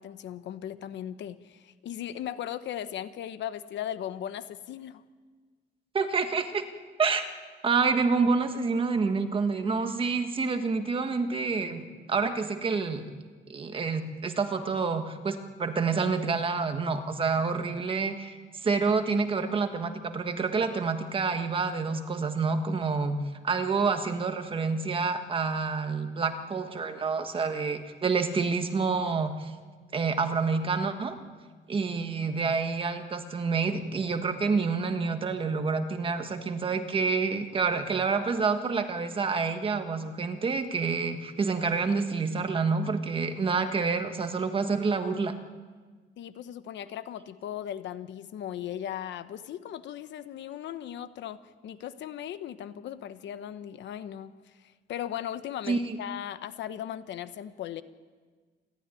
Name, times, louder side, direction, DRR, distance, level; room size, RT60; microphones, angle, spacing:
voice 1, 0.0-5.0 46.2-57.8, left 10 dB, 70° left, 12 dB, 1.0 m, -38 dB
voice 2, 5.9-6.6 7.0-7.2 7.6-13.0 13.5-18.4 18.6-23.2 23.4-29.5 29.9-31.2 31.7-45.3 55.7-56.0, right 4 dB, 30° right, 7 dB, 1.5 m, -28 dB
27.5 x 13.5 x 10.0 m, 1.5 s
cardioid pair, 175°, 19 cm